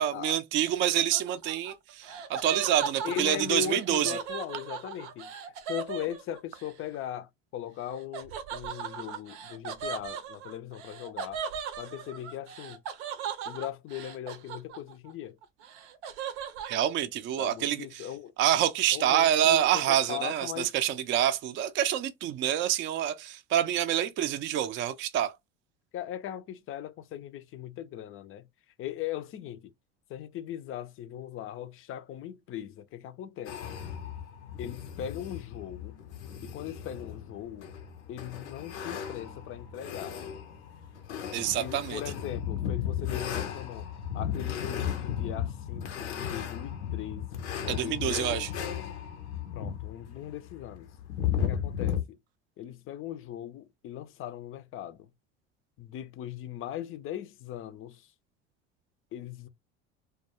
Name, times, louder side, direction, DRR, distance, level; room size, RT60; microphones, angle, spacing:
voice 1, 0.0-4.2 16.6-18.1 18.4-25.3 41.3-42.0 47.7-48.5, right 11 dB, 35° right, 0.4 m, -27 dB
Laughter, 0.7-6.7 8.1-15.1 15.4-16.8, right 7 dB, 85° right, 0.6 m, -38 dB
voice 2, 3.0-5.3 5.7-11.4 11.8-12.8 13.5-15.3 17.4-18.3 18.9-20.7 25.9-28.4 28.8-29.7 30.1-33.6 34.6-35.9 36.4-37.7 38.1-40.2 41.6-43.9 44.1-48.5 49.5-50.9 51.4-52.2 52.6-55.0 55.8-58.0 59.1-59.5, left 10 dB, 40° left, 0.4 m, -39 dB
sound 1, 33.5-52.0, left 9 dB, 85° left, 0.6 m, -35 dB
2.3 x 2.2 x 2.8 m
hypercardioid pair, 80°, 33 cm